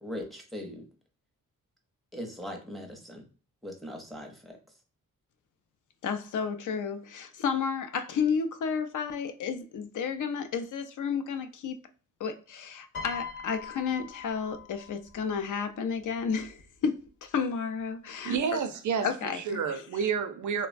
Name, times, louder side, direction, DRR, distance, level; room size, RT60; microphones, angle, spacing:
voice 1, 0.0-0.8 2.1-3.2 3.6-4.5, left 1 dB, ahead, 0.5 m, -40 dB
voice 2, 6.0-11.8 12.2-18.6 19.0-19.8, left 6 dB, 70° left, 0.5 m, -32 dB
Piano, 12.9-15.3 16.3-16.6, left 6 dB, 40° left, 0.9 m, -42 dB
voice 3, 18.2-20.7, right 6 dB, 65° right, 0.5 m, -30 dB
3.1 x 2.1 x 2.4 m
wide cardioid pair, 175°, 32 cm